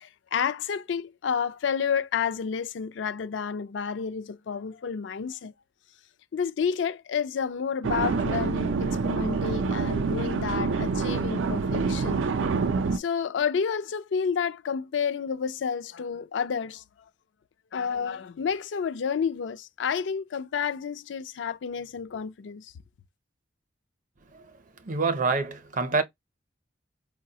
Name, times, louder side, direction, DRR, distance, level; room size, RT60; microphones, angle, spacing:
voice 1, 0.0-5.5 6.3-12.2 12.9-16.8 17.7-22.7, left 6 dB, 75° left, 0.4 m, -30 dB
sound 1, 7.8-13.0, right 4 dB, 90° right, 0.4 m, -27 dB
voice 2, 24.8-26.0, right 4 dB, 45° right, 0.6 m, -26 dB
4.6 x 2.1 x 2.7 m
head